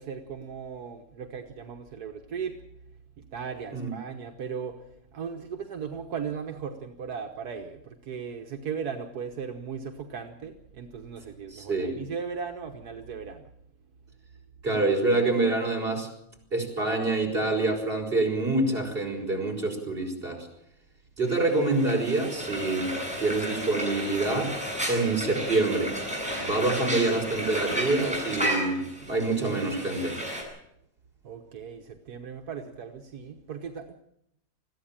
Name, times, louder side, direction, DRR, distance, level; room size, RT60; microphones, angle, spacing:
voice 1, 0.0-2.6 3.2-4.8 5.1-13.5 31.2-33.9, right 6 dB, 80° right, 5 dB, 1.7 m, -37 dB
voice 2, 11.5-11.9 14.6-16.1 16.5-20.5 21.2-22.9 23.2-24.6 24.9-26.0 26.4-30.2, right 2 dB, 35° right, 1 dB, 5.4 m, -26 dB
Frying (food), 21.3-30.4, equal, 5° right, 7.9 m, -33 dB
21.5 x 14.5 x 8.9 m, 0.76 s
omnidirectional pair, 1.7 m